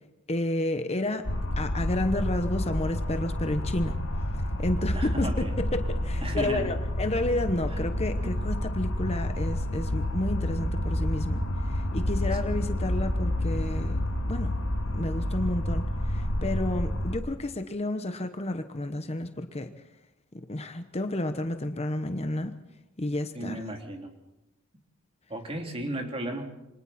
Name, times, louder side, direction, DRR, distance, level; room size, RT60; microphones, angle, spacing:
voice 1, 0.3-1.3 1.6-4.0 4.6-14.0 14.2-14.5 14.9-19.7 20.5-22.5 23.0-23.6, left 1 dB, 30° left, 8 dB, 1.0 m, -31 dB
sound 1, 1.2-17.2, left 1 dB, 55° left, 1.7 m, -29 dB
voice 2, 4.9-5.5 6.2-6.7 7.7-7.8 8.2-8.4 23.3-24.1 25.3-26.5, right 1 dB, 25° right, 3 dB, 3.2 m, -34 dB
28.0 x 24.0 x 4.3 m, 0.95 s
head